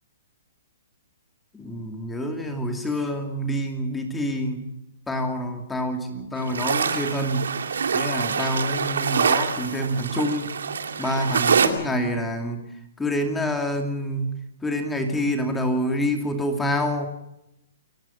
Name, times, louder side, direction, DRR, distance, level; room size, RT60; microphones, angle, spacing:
voice 1, 1.5-4.7 5.1-7.6 7.9-10.6 11.0-12.7 13.0-17.1, equal, 10° left, 4 dB, 2.6 m, -27 dB
sound 1, 6.4-11.7, right 6 dB, 85° right, 2.4 m, -25 dB
28.5 x 16.5 x 5.8 m, 0.86 s
hypercardioid pair, 150°, 0 cm